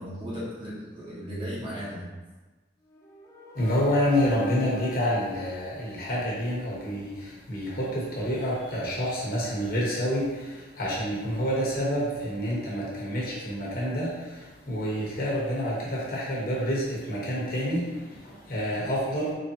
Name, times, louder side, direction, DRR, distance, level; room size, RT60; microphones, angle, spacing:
voice 1, 0.0-2.1, equal, 25° right, -9 dB, 1.2 m, -36 dB
sound 1, 2.8-6.8, left 3 dB, 15° left, 0.4 m, -44 dB
voice 2, 3.6-7.1 7.5-10.3 10.8-14.1 14.7-17.8 18.5-19.3, equal, 50° left, -5 dB, 1.1 m, -28 dB
4.1 x 3.2 x 2.8 m, 1.2 s
head